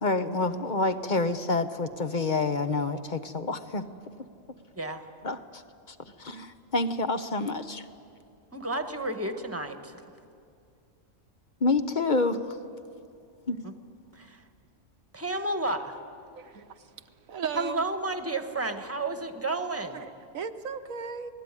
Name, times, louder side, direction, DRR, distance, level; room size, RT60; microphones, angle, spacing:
voice 1, 0.0-3.8 5.2-5.6 5.9-7.9 11.6-12.6 13.5-13.6, left 3 dB, 40° left, 9 dB, 1.0 m, -28 dB
voice 2, 8.5-10.0 13.6-13.7 14.1-14.4 15.1-16.0 17.5-20.0, right 2 dB, 10° right, 7 dB, 1.4 m, -31 dB
voice 3, 16.4-16.9 17.3-17.8 19.8-21.3, right 6 dB, 85° right, 8 dB, 1.5 m, -36 dB
27.5 x 19.5 x 9.7 m, 2.4 s
omnidirectional pair, 1.4 m